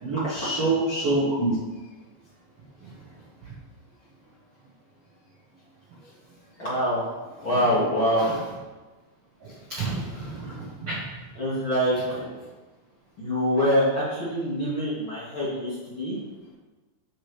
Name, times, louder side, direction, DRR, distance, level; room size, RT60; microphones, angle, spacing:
voice 1, 0.0-1.5 8.2-8.4 9.4-11.1, right 2 dB, 75° right, -6 dB, 1.4 m, -27 dB
voice 2, 6.6-7.1 7.4-8.3 11.4-12.3 13.2-16.2, equal, 45° left, -9 dB, 1.8 m, -25 dB
9.9 x 7.8 x 3.4 m, 1.3 s
omnidirectional pair, 5.3 m